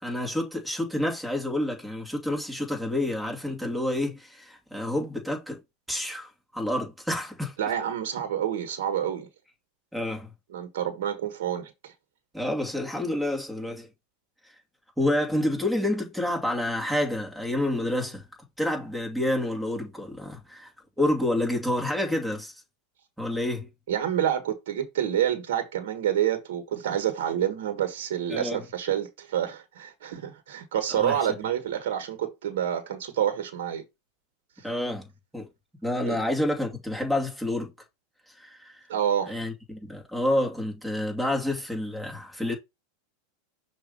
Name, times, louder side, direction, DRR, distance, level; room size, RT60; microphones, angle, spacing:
voice 1, 0.0-5.6 5.9-7.5 9.9-10.3 12.3-13.9 15.0-18.2 18.6-20.7 21.0-22.5 23.2-23.7 28.3-28.6 30.9-31.2 34.6-35.5 35.8-37.7 38.4-38.9 39.3-42.5, left 1 dB, ahead, 2.3 m, -28 dB
voice 2, 7.6-9.3 10.5-11.9 23.9-33.8 34.6-34.7 36.0-36.2 38.9-39.4, right 10 dB, 75° right, 1.5 m, -28 dB
6.1 x 2.9 x 5.3 m
supercardioid pair, 125°, 0 cm